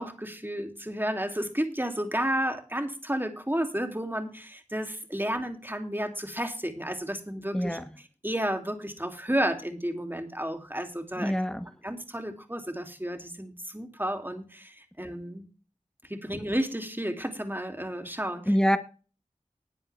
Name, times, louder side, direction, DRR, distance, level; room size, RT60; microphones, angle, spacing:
voice 1, 0.0-7.8 8.2-11.3 11.8-15.5 16.1-18.5, equal, 15° right, 2.8 m, -32 dB
voice 2, 7.5-7.8 11.2-11.7 18.5-18.8, equal, 5° left, 1.4 m, -25 dB
20.0 x 7.6 x 3.4 m
wide cardioid pair, 40°, 13 cm